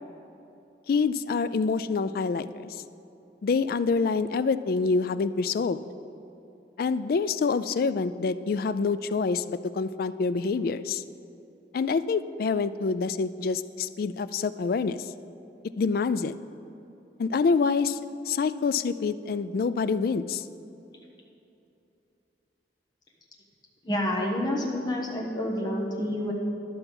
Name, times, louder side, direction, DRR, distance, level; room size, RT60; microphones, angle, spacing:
voice 1, 0.9-2.8 3.4-5.8 6.8-11.0 11.7-15.1 15.8-16.4 17.2-18.0 18.3-20.4, left 4 dB, 55° left, 14 dB, 0.3 m, -26 dB
voice 2, 23.8-26.3, left 1 dB, 25° left, -2 dB, 1.2 m, -28 dB
12.0 x 7.0 x 5.4 m, 2.9 s
head